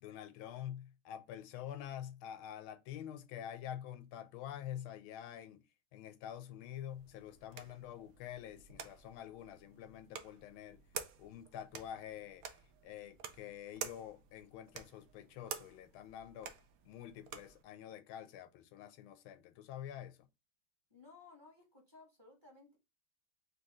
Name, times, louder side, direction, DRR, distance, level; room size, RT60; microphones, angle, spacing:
voice 1, 0.0-5.6 5.9-10.8 11.2-12.4 12.8-16.5 16.8-20.2, left 10 dB, 90° left, 1.4 m, -47 dB
sound 1, 6.9-17.6, right 7 dB, 65° right, 0.9 m, -50 dB
voice 2, 20.9-22.8, left 3 dB, 15° right, 1.4 m, -59 dB
4.1 x 3.2 x 3.6 m
omnidirectional pair, 2.2 m